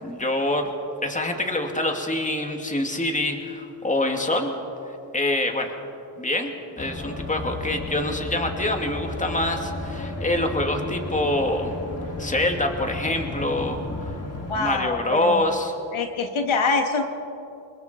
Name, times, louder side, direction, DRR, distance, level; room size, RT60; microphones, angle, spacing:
voice 1, 0.0-0.7 1.0-4.5 4.9-5.7 6.2-6.5 6.8-11.7 12.2-14.2 14.5-15.7, left 1 dB, 15° left, 3 dB, 2.5 m, -25 dB
sound 1, 6.8-14.5, left 2 dB, 30° left, 3.0 m, -33 dB
voice 2, 14.5-15.5 15.9-17.0, left 4 dB, 80° left, 5 dB, 1.8 m, -24 dB
28.0 x 21.5 x 4.5 m, 2.7 s
cardioid pair, 85°, 48 cm